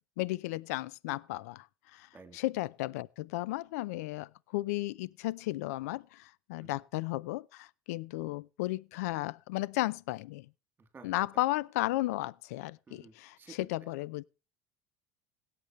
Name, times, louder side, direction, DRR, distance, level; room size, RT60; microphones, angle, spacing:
voice 1, 0.2-1.7 1.9-2.1 2.3-10.5 11.0-14.2, left 18 dB, 90° left, 0.5 m, -34 dB
voice 2, 10.8-11.1 12.9-13.9, right 4 dB, 25° right, 3.0 m, -54 dB
17.0 x 8.5 x 3.1 m
supercardioid pair, 100°, 8 cm